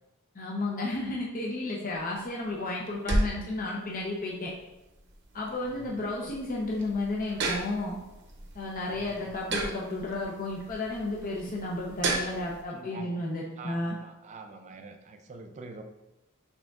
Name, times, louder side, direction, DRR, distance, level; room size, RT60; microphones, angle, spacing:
voice 1, 0.3-4.5 5.3-8.0 8.5-13.9, left 2 dB, 40° left, -3 dB, 0.6 m, -32 dB
sound 1, 1.9-12.6, right 2 dB, 55° right, 0.7 m, -35 dB
voice 2, 5.6-6.0 8.9-9.3 12.7-13.2 13.6-15.8, right 3 dB, 35° right, 6 dB, 0.3 m, -46 dB
6.2 x 3.7 x 2.4 m, 0.97 s
head